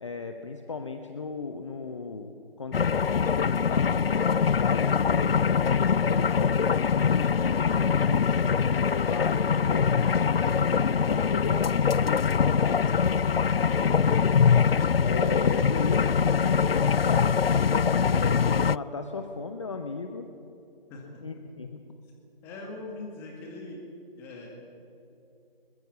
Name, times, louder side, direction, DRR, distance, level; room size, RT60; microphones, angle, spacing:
voice 1, 0.0-2.3 2.6-3.1 3.4-7.6 8.1-9.4 9.7-14.1 15.0-20.3 21.2-21.8, left 4 dB, 30° left, 6 dB, 1.0 m, -37 dB
sound 1, 2.7-18.8, left 6 dB, 80° left, 0.4 m, -23 dB
voice 2, 20.9-21.2 22.4-23.8 24.2-24.5, left 2 dB, 10° left, 0 dB, 2.0 m, -41 dB
22.0 x 20.5 x 7.4 m, 2.7 s
figure-of-eight pair, 155°, 29 cm